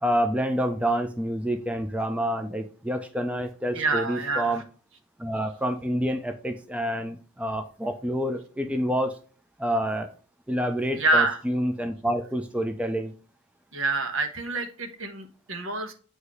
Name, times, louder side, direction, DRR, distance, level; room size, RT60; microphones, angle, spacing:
voice 1, 0.0-4.6 5.2-9.1 9.6-10.1 10.5-13.1, equal, 5° right, 6 dB, 0.4 m, -28 dB
voice 2, 3.7-4.6 11.0-11.4 13.7-15.9, right 3 dB, 70° right, 6 dB, 1.1 m, -26 dB
8.0 x 2.7 x 4.7 m, 0.40 s
head